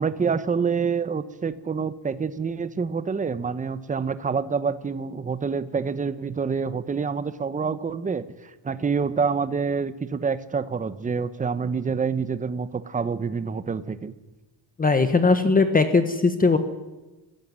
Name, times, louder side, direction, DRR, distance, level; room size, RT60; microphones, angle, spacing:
voice 1, 0.0-14.1, right 5 dB, 15° right, 13 dB, 0.9 m, -27 dB
voice 2, 14.8-16.6, left 4 dB, 20° left, 9 dB, 1.2 m, -19 dB
23.0 x 14.5 x 9.6 m, 1.1 s
cardioid pair, 155°, 46 cm